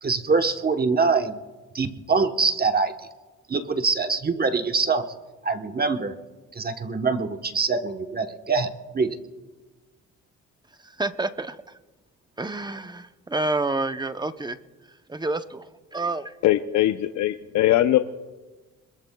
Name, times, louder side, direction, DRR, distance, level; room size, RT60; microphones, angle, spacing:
voice 1, 0.0-1.4 1.7-2.9 3.5-5.0 5.4-6.1 6.5-9.2, right 4 dB, 30° right, 6 dB, 1.1 m, -24 dB
voice 2, 10.8-11.8 12.4-14.6 14.9-16.3, right 2 dB, 15° right, 10 dB, 0.7 m, -29 dB
voice 3, 16.4-18.0, left 14 dB, 70° left, 8 dB, 0.7 m, -21 dB
26.0 x 22.0 x 2.3 m, 1.2 s
cardioid pair, 90°, 30 cm